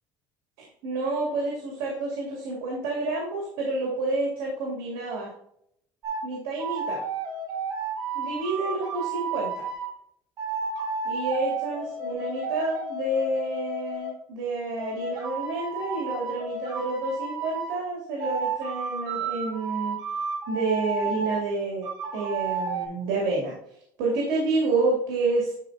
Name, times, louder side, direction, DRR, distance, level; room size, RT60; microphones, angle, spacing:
voice 1, 0.8-5.3 6.2-7.0 8.1-9.6 11.0-20.0 20.5-23.5 24.0-25.5, right 2 dB, 85° right, -3 dB, 2.3 m, -29 dB
sound 1, 6.0-6.2 6.6-9.9 10.4-14.1 14.8-17.8 18.2-21.4 21.8-22.9, right 4 dB, 50° right, 2.0 m, -32 dB
10.5 x 4.4 x 2.6 m, 0.70 s
cardioid pair, 140°, 9 cm